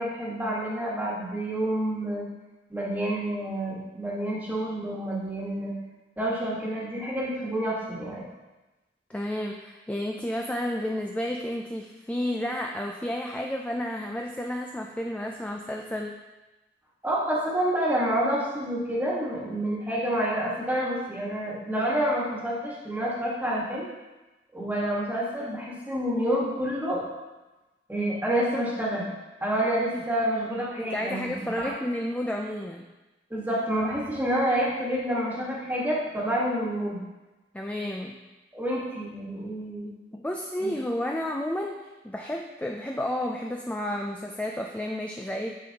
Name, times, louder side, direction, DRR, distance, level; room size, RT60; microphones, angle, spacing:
voice 1, 0.0-2.3 2.7-5.7 6.2-8.3 17.0-23.9 24.5-27.0 27.9-29.1 29.4-31.7 33.3-37.0 38.5-39.9 40.6-40.7, right 1 dB, 10° right, -5 dB, 1.5 m, -28 dB
voice 2, 9.1-16.2 29.9-30.0 30.8-32.9 37.5-38.1 40.1-45.5, left 1 dB, 5° left, 1 dB, 0.3 m, -31 dB
9.9 x 5.2 x 2.9 m, 1.1 s
head